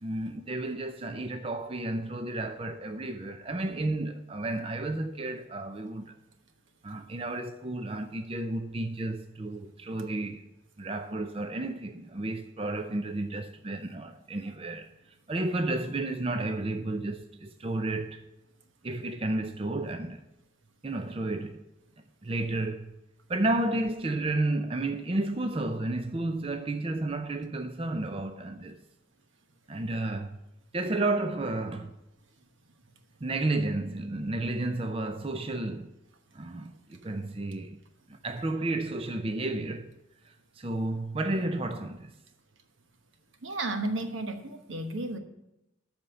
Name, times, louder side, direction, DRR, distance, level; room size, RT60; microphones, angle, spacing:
voice 1, 0.0-6.1 6.8-10.4 10.8-14.9 15.3-18.2 18.8-20.2 20.8-21.6 22.2-23.0 23.3-28.8 29.7-30.4 30.7-31.9 33.2-35.9 36.3-37.8 38.1-39.9 40.6-42.1, right 2 dB, 30° right, 0.5 m, -32 dB
voice 2, 43.4-45.2, right 2 dB, 75° right, 1.2 m, -33 dB
13.0 x 4.4 x 8.2 m
head